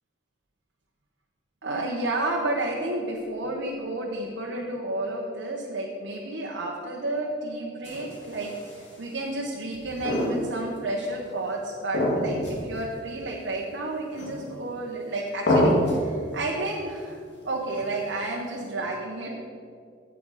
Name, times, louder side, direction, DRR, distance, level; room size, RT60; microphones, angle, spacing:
voice 1, 1.6-17.2 17.4-19.5, right 2 dB, 80° right, -2 dB, 1.0 m, -31 dB
sound 1, 7.8-9.0 9.7-10.8 11.0-11.1 11.9-12.7 13.0-13.1 14.1-14.7 15.5-16.1 17.7-18.2, left 1 dB, 70° left, 2.3 m, -26 dB
9.6 x 8.2 x 4.1 m, 2.2 s
head